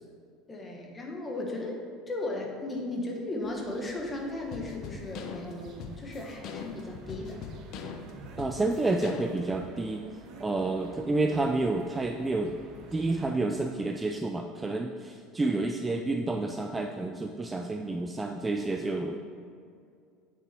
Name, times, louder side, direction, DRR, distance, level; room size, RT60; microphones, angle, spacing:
voice 1, 0.5-7.4 15.5-15.7, left 2 dB, 20° left, 0 dB, 1.5 m, -36 dB
sound 1, 3.4-13.3, right 4 dB, 55° right, 1.1 m, -51 dB
sound 2, 4.5-9.6, left 5 dB, 55° left, 0.8 m, -42 dB
voice 2, 8.4-10.0 10.4-12.6 12.9-19.2, right 2 dB, 15° right, 4 dB, 0.4 m, -29 dB
8.4 x 6.8 x 4.5 m, 2.4 s
cardioid pair, 135°, 0 cm